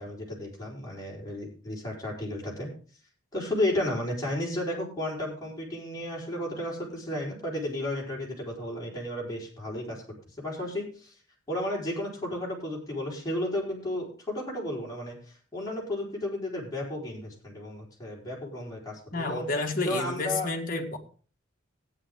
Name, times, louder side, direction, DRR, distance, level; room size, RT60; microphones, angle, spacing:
voice 1, 0.0-2.7 3.3-10.0 10.4-11.1 11.5-19.5 19.8-20.5, left 1 dB, 15° left, -4 dB, 4.6 m, -33 dB
voice 2, 19.1-21.0, left 3 dB, 40° left, 3 dB, 1.9 m, -30 dB
14.5 x 9.6 x 3.8 m, 0.40 s
head